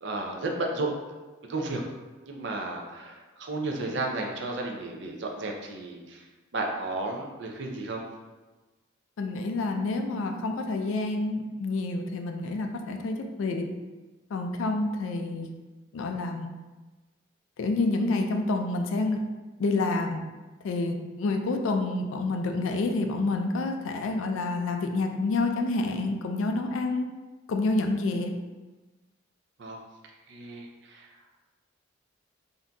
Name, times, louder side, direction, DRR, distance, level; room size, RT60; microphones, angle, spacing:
voice 1, 0.0-0.9 1.5-1.8 2.2-6.2 6.5-8.0 29.6-29.8 30.3-31.1, right 2 dB, 55° right, 1 dB, 0.4 m, -33 dB
voice 2, 9.2-13.7 14.3-15.5 15.9-16.5 17.6-19.2 19.6-20.2 20.6-27.1 27.5-28.3, left 2 dB, 70° left, 5 dB, 0.3 m, -28 dB
3.7 x 2.6 x 2.2 m, 1.2 s
head